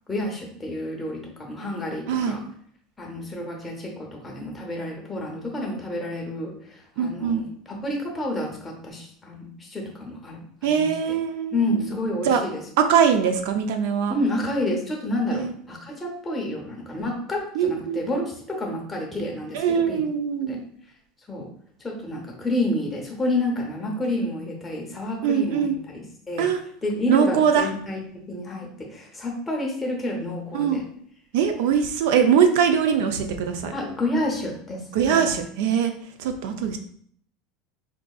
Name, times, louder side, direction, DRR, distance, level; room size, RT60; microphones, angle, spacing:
voice 1, 0.1-2.4 3.0-11.0 11.5-12.6 14.1-20.0 20.5-20.6 21.3-21.5 21.8-26.5 26.8-30.8 33.7-35.3, left 1 dB, 10° left, 0 dB, 0.7 m, -29 dB
voice 2, 7.0-7.4 10.6-11.6 12.3-12.4 12.8-14.1 15.4-15.5 17.6-18.0 19.5-20.6 25.2-25.8 26.4-26.6 27.1-27.7 30.5-30.8 31.3-33.7 34.9-35.9 36.2-36.8, right 7 dB, 70° right, 6 dB, 0.4 m, -22 dB
4.6 x 2.5 x 2.3 m, 0.63 s
supercardioid pair, 160°, 0 cm